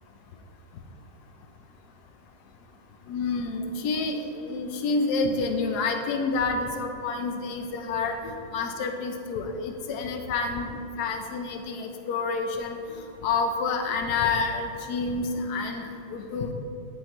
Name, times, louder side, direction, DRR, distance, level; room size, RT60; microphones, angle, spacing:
voice 1, 3.1-10.7 11.0-12.8 13.2-16.5, left 4 dB, 75° left, 4 dB, 0.9 m, -28 dB
10.5 x 3.8 x 3.0 m, 2.6 s
omnidirectional pair, 2.2 m